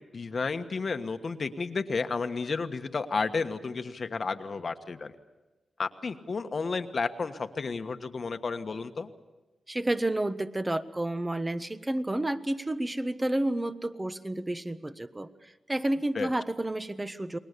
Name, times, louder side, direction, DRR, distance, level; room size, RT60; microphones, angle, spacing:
voice 1, 0.0-5.1 5.8-9.1 16.1-16.3, left 4 dB, 55° left, 7 dB, 1.4 m, -32 dB
voice 2, 9.7-17.4, right 1 dB, 20° right, 11 dB, 1.2 m, -30 dB
30.0 x 21.0 x 6.8 m, 1.1 s
cardioid pair, 75°, 0 cm